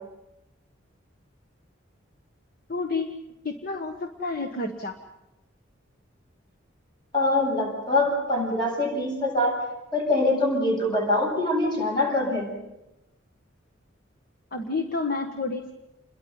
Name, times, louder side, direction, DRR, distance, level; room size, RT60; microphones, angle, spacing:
voice 1, 2.7-3.2 3.4-5.0 14.5-15.7, left 3 dB, 50° left, 5 dB, 1.4 m, -30 dB
voice 2, 7.1-9.6 9.9-12.5, left 2 dB, 25° left, 0 dB, 7.7 m, -24 dB
29.0 x 22.0 x 5.5 m, 0.96 s
head